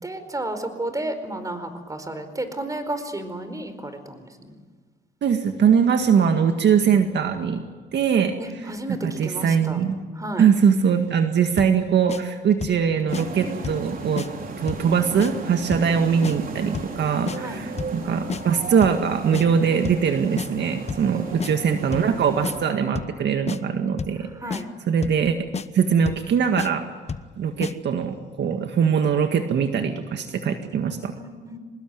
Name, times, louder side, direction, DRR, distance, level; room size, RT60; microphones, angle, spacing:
voice 1, 0.0-4.5 8.4-9.8 10.1-10.4 13.4-13.9 17.4-17.6 21.1-22.1 24.3-24.7 30.8-31.6, right 1 dB, 15° right, 9 dB, 4.6 m, -33 dB
voice 2, 5.2-7.6 7.9-8.3 8.9-10.0 10.4-14.3 14.6-24.3 24.9-25.4 25.7-26.9 27.4-31.1, right 7 dB, 60° right, 6 dB, 1.9 m, -21 dB
sound 1, 11.6-11.8 12.1-12.2 12.6-12.8 13.1-13.2 13.6-13.9 14.2-14.3 14.7-14.9 15.2-15.3 15.7-15.9 16.2-16.4 16.7-17.0 17.3-17.4 17.8-18.0 18.3-18.4 18.8-19.0 19.3-19.5 19.8-20.1 20.4-20.5 20.9-21.1 21.4-21.5 21.9-22.1 22.4-22.6 22.9-23.2 23.5-23.6 24.0-24.2 24.5-24.6 25.0-25.2 25.5-25.7 26.1-26.3 26.6-26.7 27.1-27.3 27.6-27.7, left 5 dB, 35° left, 1.1 m, -30 dB
sound 2, 13.1-22.7, right 3 dB, 45° right, 4.3 m, -35 dB
25.5 x 20.5 x 9.4 m, 1.4 s
cardioid pair, 90°, 20 cm